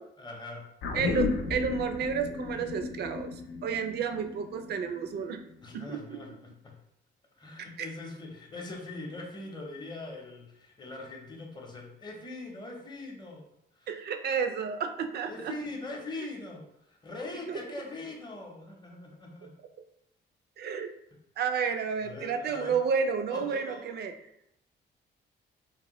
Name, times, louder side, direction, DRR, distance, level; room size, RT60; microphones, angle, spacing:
voice 1, 0.2-0.7 5.6-6.8 7.4-13.5 13.8-13.9 15.3-19.5 22.0-22.8 23.3-23.9, left 2 dB, 20° left, 0 dB, 0.7 m, -42 dB
sound 1, 0.8-5.4 5.7-5.8, left 4 dB, 85° left, 0.5 m, -34 dB
voice 2, 0.9-3.3 3.6-5.4 5.7-6.2 7.8-7.9 13.9-15.5 17.5-17.6 20.6-20.9 21.4-24.1, right 6 dB, 55° right, 7 dB, 0.4 m, -31 dB
2.8 x 2.1 x 2.9 m, 0.78 s
cardioid pair, 90°, 20 cm